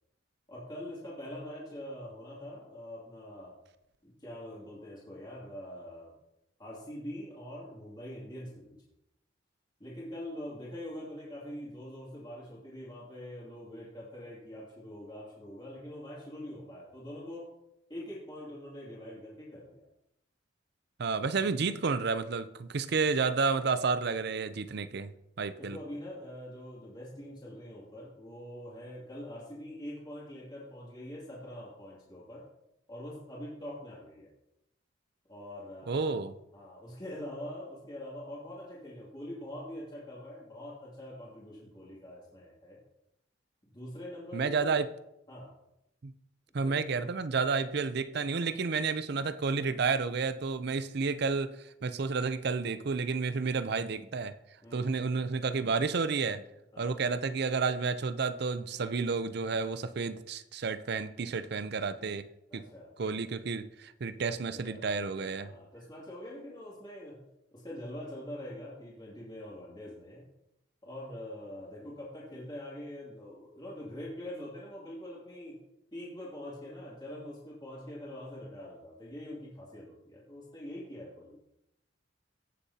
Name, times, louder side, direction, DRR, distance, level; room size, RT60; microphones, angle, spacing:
voice 1, 0.5-3.5 4.0-6.1 6.6-8.8 9.8-17.5 17.9-19.8 25.6-32.5 32.9-34.3 35.3-36.2 36.5-42.8 43.7-44.7 45.3-45.5 46.5-47.1 48.1-48.3 54.6-54.9 56.7-57.0 62.5-62.9 64.1-67.2 67.5-70.2 70.8-75.6 75.9-81.4, left 1 dB, 25° left, 2.6 m, -44 dB
voice 2, 21.0-25.1 25.4-25.8 35.9-36.3 44.3-44.9 46.0-46.1 46.5-51.6 51.8-54.3 54.7-56.4 56.8-62.3 62.5-62.6 63.0-65.5, right 4 dB, 60° right, 0.6 m, -31 dB
16.5 x 6.8 x 2.8 m
head